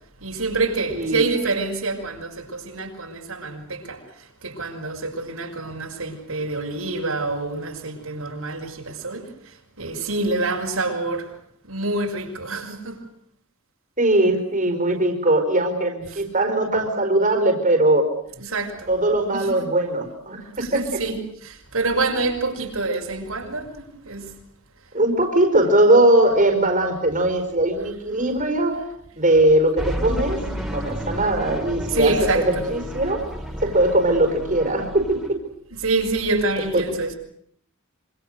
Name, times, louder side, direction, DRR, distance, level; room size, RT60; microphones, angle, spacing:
voice 1, 0.2-11.3 11.6-13.0 16.1-16.2 18.4-18.9 19.3-19.6 20.6-24.4 27.8-28.0 31.8-32.7 35.7-37.2, right 3 dB, 75° right, 6.1 m, -27 dB
voice 2, 0.9-1.2 14.0-18.1 18.9-21.0 24.9-28.9 29.2-33.2 33.6-35.4, right 1 dB, 35° right, 4.7 m, -20 dB
sound 1, 29.8-35.3, equal, ahead, 4.6 m, -31 dB
27.0 x 26.0 x 6.5 m
head